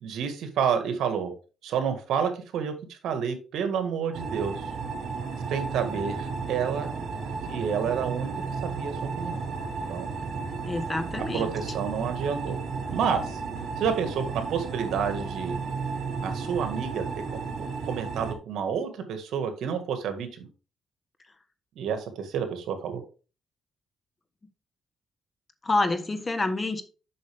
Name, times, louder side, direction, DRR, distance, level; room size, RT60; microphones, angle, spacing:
voice 1, 0.0-1.3 1.6-4.6 5.5-6.9 7.5-8.3 8.6-9.4 9.9-10.1 11.3-12.6 12.9-13.4 13.8-15.6 16.2-17.0 17.3-20.5 21.7-23.0, right 7 dB, 75° right, 7 dB, 1.7 m, -29 dB
sound 1, 4.1-18.3, right 4 dB, 60° right, 1.7 m, -33 dB
voice 2, 10.6-11.5 25.6-26.8, left 2 dB, 25° left, 9 dB, 1.3 m, -27 dB
7.7 x 6.2 x 3.5 m, 0.35 s
cardioid pair, 90°, 0 cm